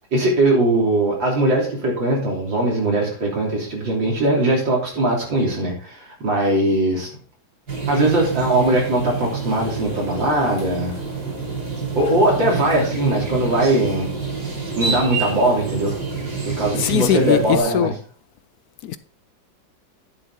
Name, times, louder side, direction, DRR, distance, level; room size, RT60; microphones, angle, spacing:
voice 1, 0.1-7.1 7.9-11.0 11.9-14.1 14.7-16.0 16.4-17.9, right 1 dB, 75° right, 4.1 m, -20 dB
sound 1, 7.7-17.6, right 4 dB, 55° right, 3.7 m, -27 dB
voice 2, 16.8-17.9 18.8-19.0, left 11 dB, 70° left, 0.9 m, -20 dB
10.5 x 7.4 x 3.7 m
omnidirectional pair, 2.1 m